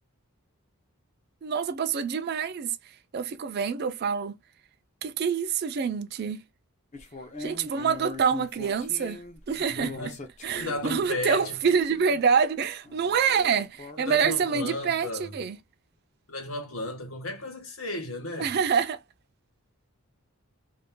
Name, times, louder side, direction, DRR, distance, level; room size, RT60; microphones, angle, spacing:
voice 1, 1.4-2.8 3.1-4.4 5.0-6.4 7.4-9.2 9.5-10.1 10.4-15.6 18.4-19.0, right 6 dB, 45° right, 0.3 m, -26 dB
sound 1, 6.9-12.2 12.8-15.1, left 2 dB, 30° left, 0.6 m, -43 dB
voice 2, 9.5-10.2 10.5-11.6 14.0-15.3 16.3-18.5, left 2 dB, 65° left, 1.2 m, -34 dB
2.5 x 2.3 x 3.5 m
head